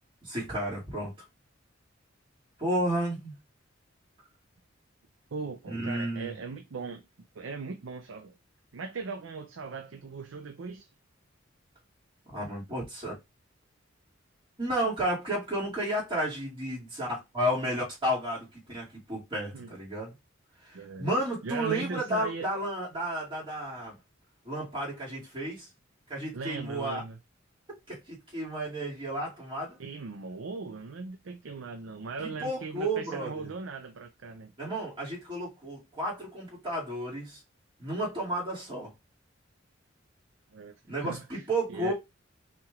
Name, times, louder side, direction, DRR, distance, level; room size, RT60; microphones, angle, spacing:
voice 1, 0.2-1.1 2.6-3.3 5.6-6.3 12.3-13.1 14.6-20.1 20.6-24.0 24.4-25.7 26.1-27.0 27.9-29.8 32.2-33.5 34.6-37.4 37.8-38.9 40.9-41.9, right 1 dB, 25° right, 2.4 m, -32 dB
voice 2, 5.3-7.0 7.3-8.4 8.7-10.9 19.5-19.7 20.7-21.1 21.4-22.5 26.3-27.2 29.8-34.5 40.5-40.7 41.0-41.4 41.7-41.9, right 4 dB, 75° right, 0.5 m, -39 dB
5.7 x 3.3 x 2.4 m
head